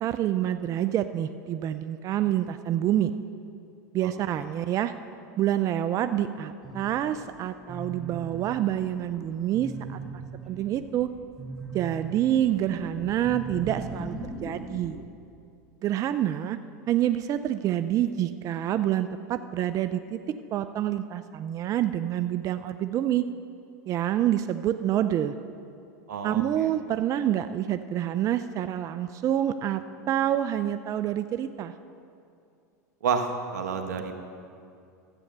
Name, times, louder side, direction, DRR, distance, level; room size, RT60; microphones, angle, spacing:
voice 1, 0.0-3.1 3.9-4.9 5.4-10.0 10.5-11.1 11.7-14.1 14.4-15.0 15.8-16.6 16.9-20.2 20.5-23.2 23.9-25.3 26.2-31.7, right 11 dB, 40° right, 10 dB, 0.4 m, -27 dB
voice 2, 4.0-4.4 26.1-26.7 33.0-34.2, right 5 dB, 85° right, 5 dB, 1.3 m, -30 dB
sound 1, 6.6-15.1, right 3 dB, ahead, 1.5 m, -40 dB
12.5 x 8.5 x 6.7 m, 2.5 s
hypercardioid pair, 100°, 9 cm